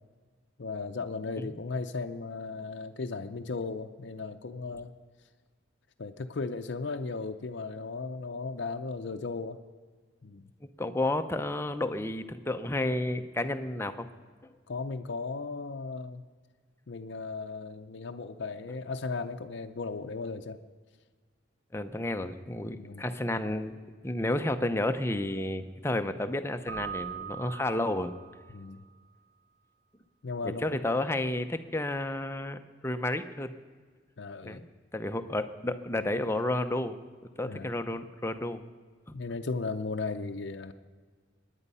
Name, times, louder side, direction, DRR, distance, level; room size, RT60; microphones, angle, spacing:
voice 1, 0.6-4.9 6.0-9.6 10.2-10.4 14.7-16.2 16.9-20.6 22.7-23.0 28.5-28.8 30.2-30.6 34.2-34.6 37.4-37.7 39.1-40.7, left 4 dB, 60° left, 5 dB, 0.6 m, -36 dB
voice 2, 10.8-14.1 21.7-23.8 24.0-28.1 30.6-33.5 34.4-34.7 34.9-37.0 37.4-38.6 39.1-39.2, left 1 dB, 15° left, 8 dB, 0.6 m, -31 dB
Keyboard (musical), 26.7-28.5, right 7 dB, 55° right, 1.8 m, -40 dB
23.5 x 9.9 x 5.5 m, 1.5 s
head